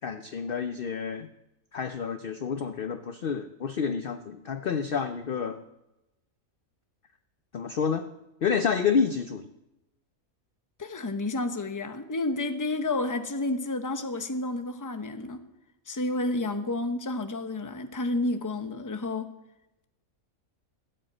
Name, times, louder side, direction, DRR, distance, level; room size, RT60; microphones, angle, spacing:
voice 1, 0.0-1.3 1.7-5.6 7.5-8.1 8.4-9.5, left 6 dB, 55° left, 9 dB, 0.7 m, -29 dB
voice 2, 10.8-15.4 15.9-19.3, left 2 dB, 15° left, 7 dB, 0.8 m, -30 dB
15.0 x 7.9 x 8.6 m, 0.96 s
omnidirectional pair, 1.5 m